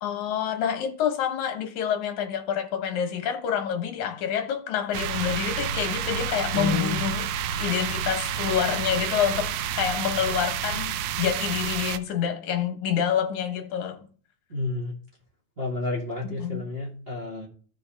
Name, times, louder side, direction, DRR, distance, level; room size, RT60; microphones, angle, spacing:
voice 1, 0.0-7.3 7.5-14.0 16.2-16.7, left 8 dB, 80° left, 2.6 m, -27 dB
sound 1, 4.9-12.0, right 8 dB, 80° right, 1.9 m, -29 dB
voice 2, 6.5-7.0 14.5-14.9 15.6-17.5, left 3 dB, 25° right, 1.5 m, -30 dB
14.5 x 5.5 x 3.4 m
omnidirectional pair, 3.4 m